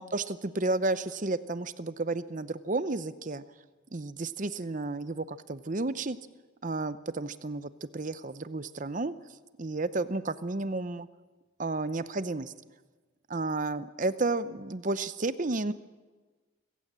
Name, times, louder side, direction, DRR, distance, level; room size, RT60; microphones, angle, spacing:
voice 1, 0.0-3.4 3.9-6.2 6.6-9.1 9.6-11.1 11.6-12.5 13.3-15.7, right 2 dB, 40° right, 14 dB, 0.7 m, -32 dB
25.0 x 16.0 x 7.5 m, 1.3 s
head